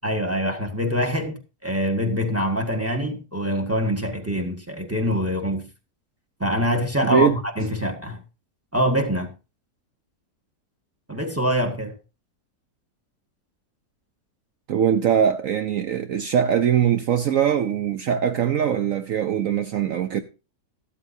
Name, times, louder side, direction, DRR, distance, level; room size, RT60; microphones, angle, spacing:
voice 1, 0.0-5.7 6.4-8.2 8.7-9.3 11.1-12.0, equal, 10° right, 1.4 m, -24 dB
voice 2, 7.0-7.4 14.7-20.2, right 9 dB, 60° right, 1.0 m, -21 dB
13.5 x 12.5 x 2.7 m
omnidirectional pair, 1.7 m